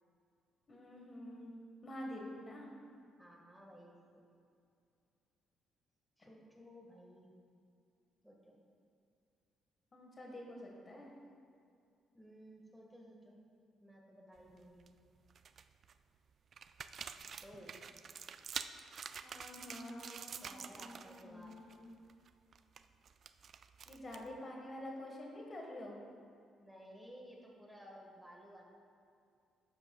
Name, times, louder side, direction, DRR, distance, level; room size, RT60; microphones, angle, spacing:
voice 1, 0.7-1.5 1.8-2.7 6.2-6.3 9.9-11.1 19.2-21.9 23.9-26.0, left 1 dB, 40° left, -1 dB, 1.4 m, -48 dB
voice 2, 3.2-4.0 6.2-7.3 8.2-8.6 12.1-13.4 13.8-14.9 17.4-17.8 20.4-21.6 26.6-28.6, equal, 5° right, -1 dB, 1.6 m, -56 dB
sound 1, 14.4-14.9 15.3-15.9 16.5-21.2 21.5-21.8 22.1-24.4, right 6 dB, 55° right, 0.3 m, -48 dB
11.5 x 7.7 x 2.3 m, 2.4 s
supercardioid pair, 75°, 0 cm